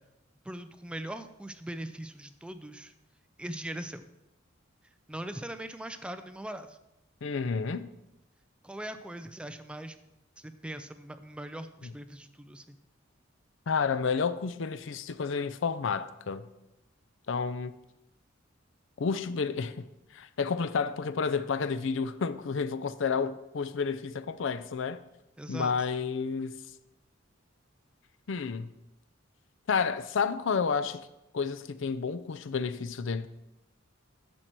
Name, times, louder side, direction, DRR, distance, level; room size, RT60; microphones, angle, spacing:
voice 1, 0.4-2.9 3.4-4.0 5.1-6.8 8.6-10.0 10.4-12.8 25.4-25.9, right 1 dB, 5° right, 0.4 m, -40 dB
voice 2, 7.2-7.9 13.7-16.5 17.3-17.7 19.0-19.8 20.1-25.0 25.5-26.6 28.3-28.7 29.7-31.1 31.3-33.3, left 5 dB, 70° left, 0.5 m, -30 dB
10.5 x 7.5 x 4.5 m
head